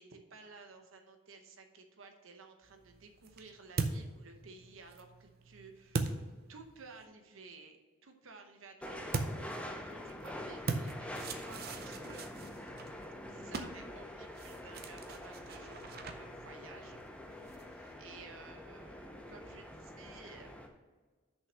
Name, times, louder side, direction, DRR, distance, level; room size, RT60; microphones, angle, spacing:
voice 1, 0.0-6.2 6.5-12.2 13.1-17.0 17.2-20.7, right 4 dB, 80° right, 5 dB, 0.9 m, -54 dB
sound 1, 2.6-7.0 9.1-17.9, right 3 dB, 50° right, 0.5 m, -42 dB
sound 2, 8.8-20.7, left 1 dB, 5° left, 0.6 m, -46 dB
6.5 x 5.5 x 6.1 m, 1.3 s
head